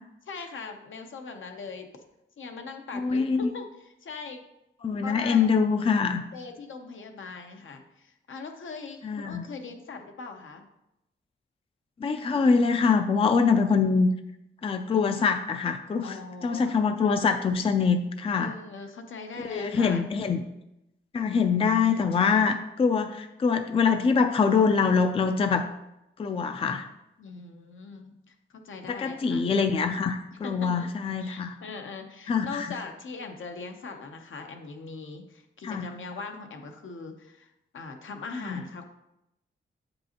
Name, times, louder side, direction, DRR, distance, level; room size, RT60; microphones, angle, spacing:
voice 1, 0.3-1.9 2.4-4.4 5.0-5.5 6.3-10.6 16.0-16.8 18.3-20.1 27.2-29.5 30.4-30.9 31.2-38.8, left 4 dB, 75° left, 5 dB, 0.7 m, -40 dB
voice 2, 2.9-3.5 4.8-6.2 9.0-9.5 12.0-14.1 14.6-16.2 16.4-18.5 19.4-20.4 21.1-25.6 26.2-26.9 28.9-31.6 32.3-32.7 35.6-35.9 38.4-38.6, left 5 dB, 30° left, 7 dB, 0.3 m, -24 dB
8.1 x 5.2 x 2.9 m, 0.87 s
wide cardioid pair, 145°, 21 cm